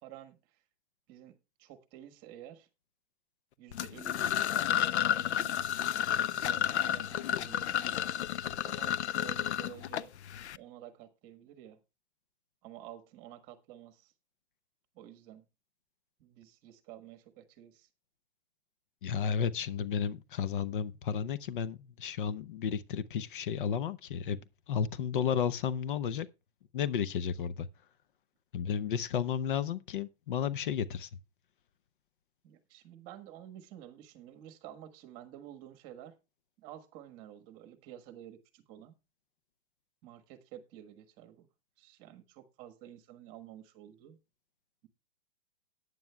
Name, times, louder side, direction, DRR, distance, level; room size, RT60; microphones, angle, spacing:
voice 1, 0.0-0.6 1.1-2.7 3.6-5.7 6.1-8.1 8.6-10.1 10.6-11.8 12.6-14.1 14.9-15.4 16.2-17.9 32.4-36.1 36.6-38.9 40.0-41.5 41.8-44.2, right 11 dB, 25° right, 1.4 m, -51 dB
sound 1, 3.7-10.6, left 10 dB, 85° left, 0.7 m, -31 dB
voice 2, 19.0-24.4 24.7-26.3 26.7-27.7 28.5-31.1, left 7 dB, 50° left, 0.7 m, -32 dB
18.0 x 9.4 x 2.3 m
hypercardioid pair, 160°, 33 cm